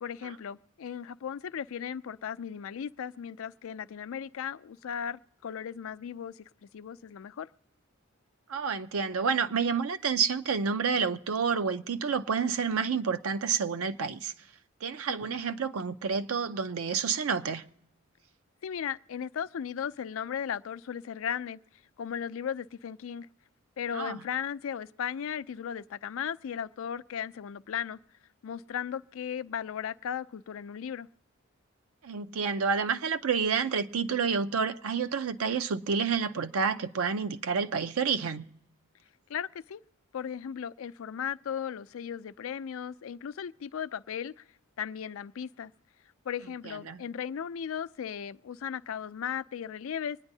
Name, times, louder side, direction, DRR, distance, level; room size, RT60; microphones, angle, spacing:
voice 1, 0.0-7.5 15.3-15.4 18.6-21.6 22.0-23.3 23.8-28.0 28.4-31.1 39.3-39.8 40.1-44.4 44.8-45.7 46.3-50.2, left 8 dB, 65° left, 0.4 m, -36 dB
voice 2, 8.5-14.3 14.8-17.6 23.9-24.2 32.0-38.4 46.9-47.0, right 5 dB, 80° right, 0.6 m, -29 dB
25.0 x 9.6 x 2.7 m
head